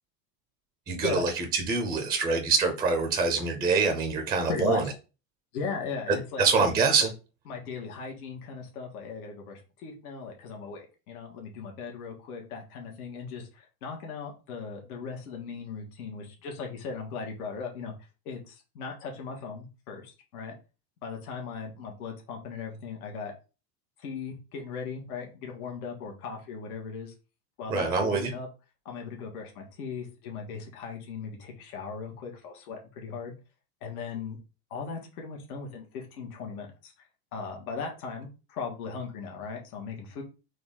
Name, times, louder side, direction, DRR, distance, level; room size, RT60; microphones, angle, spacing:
voice 1, 0.9-4.8 6.1-7.1 27.7-28.3, right 4 dB, 10° right, 5 dB, 0.4 m, -25 dB
voice 2, 4.5-4.9 5.5-6.8 7.5-17.9 18.2-20.5 21.0-23.3 24.0-27.1 27.6-28.5 28.8-33.3 33.8-34.4 34.7-36.9 37.3-40.2, left 5 dB, 90° left, 1 dB, 1.6 m, -38 dB
4.1 x 3.1 x 3.7 m, 0.32 s
supercardioid pair, 155°, 43 cm